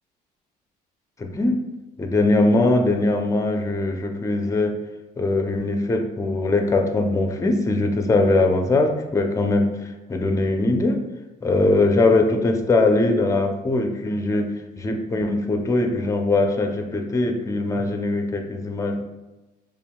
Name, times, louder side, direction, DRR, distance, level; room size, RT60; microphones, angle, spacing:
voice 1, 1.2-1.6 2.0-4.7 5.2-9.7 10.1-11.0 11.4-14.5 14.8-19.0, left 2 dB, 20° left, 4 dB, 0.5 m, -21 dB
4.4 x 3.1 x 2.2 m, 1.1 s
cardioid pair, 110°, 17 cm